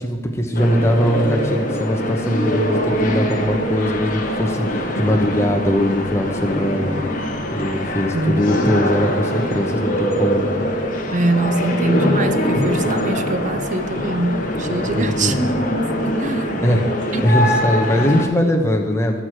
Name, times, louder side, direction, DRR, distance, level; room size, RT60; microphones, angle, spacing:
voice 1, 0.0-7.1 7.5-10.5 14.9-15.4 16.6-16.9 17.2-19.2, equal, 15° left, 2 dB, 1.1 m, -20 dB
sound 1, 0.5-18.2, equal, 45° left, 1.2 m, -23 dB
voice 2, 8.1-8.5 11.1-15.3 16.2-16.7 17.1-17.2, right 2 dB, 40° right, 10 dB, 0.6 m, -23 dB
13.0 x 4.9 x 7.5 m, 1.3 s
head